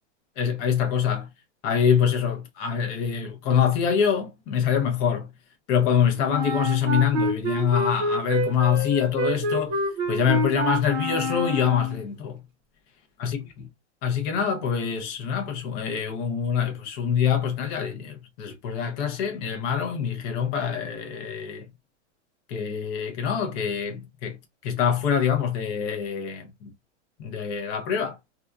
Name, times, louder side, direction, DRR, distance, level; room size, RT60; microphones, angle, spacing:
voice 1, 0.4-1.3 1.6-5.3 5.7-9.8 10.1-12.4 13.2-13.4 14.0-21.7 22.5-24.4 24.6-26.7 27.2-28.2, left 7 dB, 25° left, 0.6 m, -25 dB
Wind instrument woodwind instrument, 6.3-12.0, equal, 30° right, 0.8 m, -27 dB
2.7 x 2.3 x 2.2 m
supercardioid pair, 160°, 36 cm